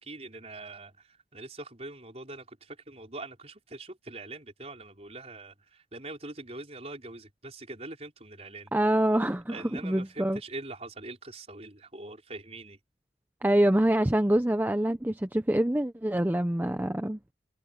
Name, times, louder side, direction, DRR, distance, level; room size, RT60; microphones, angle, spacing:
voice 1, 0.0-8.7 9.5-12.8, right 2 dB, 35° right, 4.8 m, -43 dB
voice 2, 8.7-10.4 13.4-17.2, right 1 dB, 10° right, 0.6 m, -25 dB
head